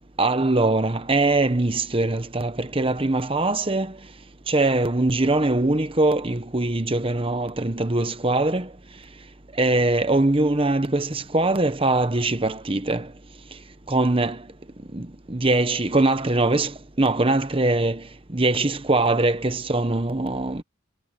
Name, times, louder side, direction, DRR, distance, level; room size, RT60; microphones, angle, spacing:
voice 1, 0.2-3.9 4.5-8.7 9.6-13.1 13.9-14.4 14.9-16.7 17.0-18.0 18.3-20.6, right 2 dB, 25° right, 1.1 m, -22 dB
head